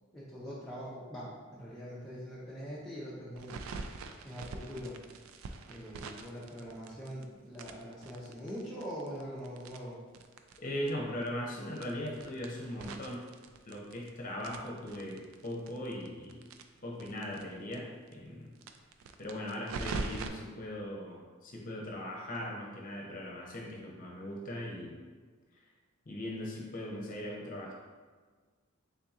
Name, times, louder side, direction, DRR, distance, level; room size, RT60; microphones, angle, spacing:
voice 1, 0.1-3.5 4.2-5.0 5.7-10.0, equal, ahead, -11 dB, 0.6 m, -43 dB
sound 1, 3.4-7.2 7.5-10.6 10.9-11.0 11.2-11.3 11.7-14.1 14.4-17.4 17.7-17.8 18.1-18.2 18.6-20.3, right 4 dB, 85° right, 0.3 m, -43 dB
voice 2, 10.6-13.2 13.7-16.4 16.8-18.5 19.2-25.0 26.1-27.7, left 1 dB, 40° left, -1 dB, 0.7 m, -39 dB
3.7 x 2.8 x 3.5 m, 1.5 s
head